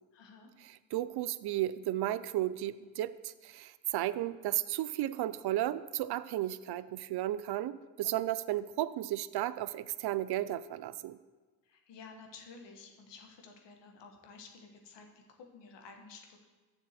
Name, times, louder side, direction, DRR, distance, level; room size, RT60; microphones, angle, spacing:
voice 1, 0.1-0.5 11.6-16.4, left 4 dB, 75° left, 2 dB, 1.4 m, -53 dB
voice 2, 0.9-11.2, right 13 dB, 60° right, 16 dB, 0.5 m, -34 dB
7.0 x 6.4 x 6.5 m, 1.3 s
supercardioid pair, 50°, 43 cm